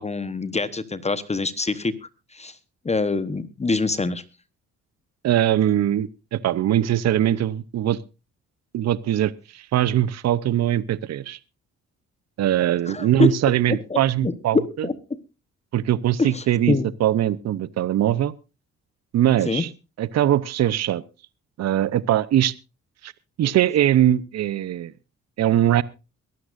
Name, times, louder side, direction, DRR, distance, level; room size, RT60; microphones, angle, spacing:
voice 1, 0.0-1.9 2.3-2.5 2.8-4.2 12.9-13.3 13.7-15.2 16.2-16.9 19.5-19.6, left 3 dB, 20° left, 14 dB, 1.1 m, -25 dB
voice 2, 5.2-8.0 8.7-11.4 12.4-14.9 15.7-18.3 19.1-19.7 20.0-21.0 21.6-22.5 23.0-23.1 23.4-24.9 25.4-25.8, right 12 dB, 60° right, 19 dB, 0.7 m, -21 dB
23.0 x 13.0 x 2.6 m, 0.29 s
cardioid pair, 90°, 30 cm